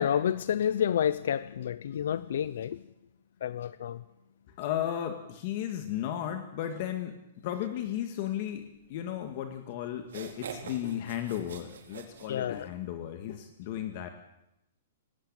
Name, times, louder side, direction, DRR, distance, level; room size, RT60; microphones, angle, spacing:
voice 1, 0.0-2.8 3.4-4.0 12.3-12.7, left 9 dB, 65° left, 16 dB, 0.8 m, -29 dB
voice 2, 4.6-7.2 7.4-14.1, left 11 dB, 40° left, 6 dB, 1.9 m, -34 dB
sound 1, 9.5-9.6 10.0-12.9, right 7 dB, 75° right, 4.6 m, -44 dB
19.0 x 17.0 x 9.1 m, 0.85 s
hypercardioid pair, 165°, 0 cm